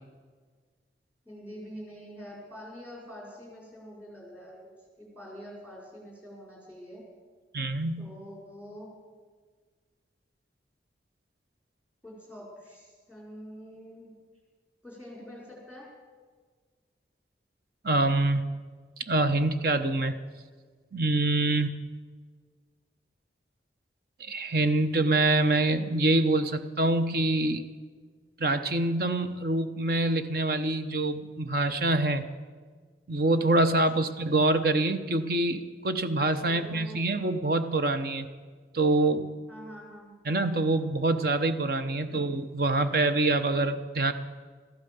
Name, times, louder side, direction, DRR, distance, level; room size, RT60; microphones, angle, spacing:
voice 1, 1.2-4.7 5.0-7.0 8.0-8.9 12.0-14.1 14.8-15.9 33.9-34.0 36.3-37.0 39.5-40.2, equal, 5° right, -3 dB, 4.9 m, -45 dB
voice 2, 7.5-8.1 17.8-18.4 19.1-20.2 20.9-21.7 24.2-27.7 28.4-32.3 33.1-38.3 38.7-39.3 40.2-44.1, right 2 dB, 55° right, 9 dB, 0.8 m, -25 dB
14.0 x 12.0 x 6.9 m, 1.5 s
head